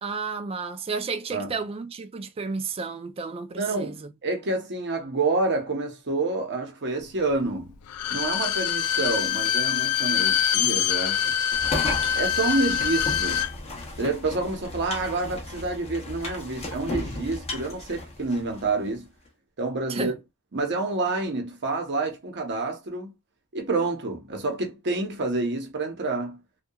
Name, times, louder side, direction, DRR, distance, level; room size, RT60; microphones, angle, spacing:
voice 1, 0.0-4.1 19.9-20.2, right 4 dB, 25° right, 0.3 m, -32 dB
voice 2, 3.6-7.7 8.1-11.3 12.1-13.4 14.0-19.1 19.6-20.1 20.5-23.1 23.5-26.4, right 3 dB, 50° right, 0.8 m, -28 dB
Bowed string instrument, 7.9-13.5 13.8-13.9, left 9 dB, 80° left, 0.3 m, -24 dB
sound 1, 11.5-18.7, left 2 dB, 30° left, 0.6 m, -35 dB
2.8 x 2.2 x 2.2 m
head